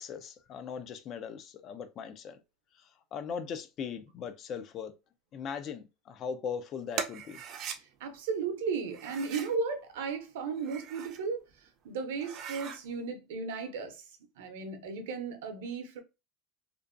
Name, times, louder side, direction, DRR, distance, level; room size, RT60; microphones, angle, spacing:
voice 1, 0.0-2.4 2.8-4.9 5.3-7.4, left 6 dB, 40° left, 0.3 m, -39 dB
sound 1, 6.9-7.8 8.9-9.6 10.5-11.2 11.7-11.8 12.1-12.8, right 7 dB, 45° right, 0.4 m, -40 dB
voice 2, 7.8-14.0 14.4-16.0, right 5 dB, 85° right, 0.6 m, -35 dB
2.5 x 2.2 x 2.4 m
supercardioid pair, 135°, 0 cm